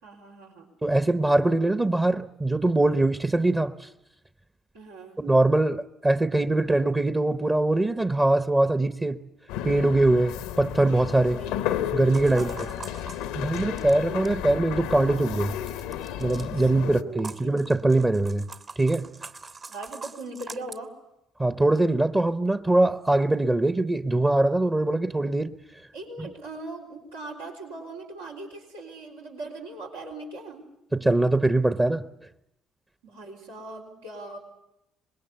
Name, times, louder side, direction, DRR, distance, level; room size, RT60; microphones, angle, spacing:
voice 1, 0.0-0.7 4.7-5.2 11.3-11.7 12.2-13.1 16.5-17.5 19.7-20.9 25.9-30.7 33.0-34.4, right 2 dB, 85° right, 3.9 m, -40 dB
voice 2, 0.8-3.9 5.2-9.2 9.6-11.4 11.9-12.7 13.3-15.6 16.2-18.5 18.8-19.1 21.4-25.5 30.9-32.1, right 2 dB, 20° right, 0.9 m, -22 dB
sound 1, 9.5-17.0, left 11 dB, 75° left, 0.8 m, -33 dB
sound 2, 12.1-14.4 15.7-16.5 17.2-20.8, right 4 dB, 45° right, 1.5 m, -43 dB
25.0 x 21.0 x 8.1 m
hypercardioid pair, 50°, 0 cm